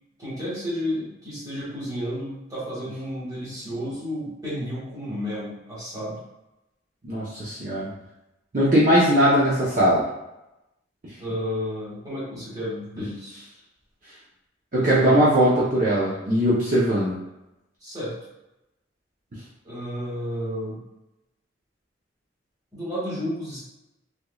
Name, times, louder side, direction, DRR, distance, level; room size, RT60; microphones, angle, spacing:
voice 1, 0.2-6.2 11.2-13.4 14.8-15.3 17.8-18.1 19.6-20.8 22.7-23.6, equal, 20° right, -9 dB, 1.5 m, -32 dB
voice 2, 7.0-7.9 8.5-10.0 14.7-17.1, equal, 45° right, -8 dB, 0.7 m, -20 dB
3.5 x 3.0 x 2.3 m, 0.94 s
head